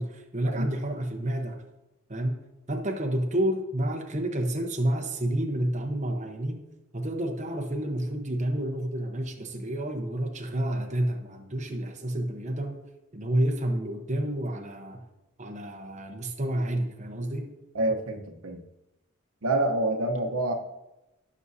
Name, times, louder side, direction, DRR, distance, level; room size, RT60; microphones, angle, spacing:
voice 1, 0.0-1.6 2.1-2.4 2.7-6.6 6.9-12.8 13.1-15.0 15.4-17.5, right 1 dB, 35° right, 3 dB, 1.0 m, -29 dB
voice 2, 17.7-18.7 19.4-20.5, right 2 dB, 80° right, 4 dB, 1.1 m, -27 dB
17.5 x 6.3 x 2.8 m, 0.96 s
head